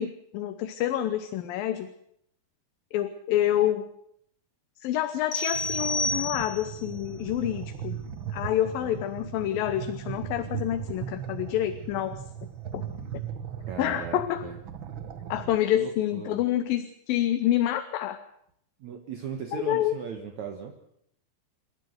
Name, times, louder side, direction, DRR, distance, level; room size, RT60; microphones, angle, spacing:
voice 1, 0.0-1.9 2.9-3.9 4.8-8.0 8.3-12.2 12.7-12.8 13.8-14.4 15.3-18.2 19.5-19.9, left 12 dB, 80° left, 9 dB, 2.7 m, -27 dB
sound 1, 5.3-6.9, left 2 dB, 45° left, 2.7 m, -30 dB
sound 2, 5.5-15.6, right 8 dB, 80° right, 1.1 m, -38 dB
voice 2, 8.6-9.0 13.7-14.6 15.8-16.4 18.8-20.7, right 7 dB, 60° right, 4 dB, 2.6 m, -38 dB
28.5 x 12.0 x 8.0 m, 0.73 s
omnidirectional pair, 4.0 m